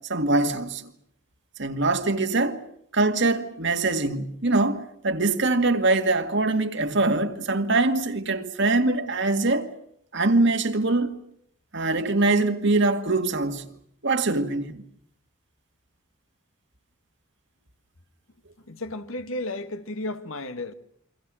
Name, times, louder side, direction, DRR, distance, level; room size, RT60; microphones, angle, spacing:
voice 1, 0.1-0.9 1.6-2.6 2.9-9.7 10.1-11.2 11.7-13.7 14.0-14.8, right 2 dB, 55° right, 2.0 m, -23 dB
voice 2, 18.7-20.7, left 2 dB, 75° left, 1.7 m, -33 dB
29.0 x 24.5 x 6.3 m
head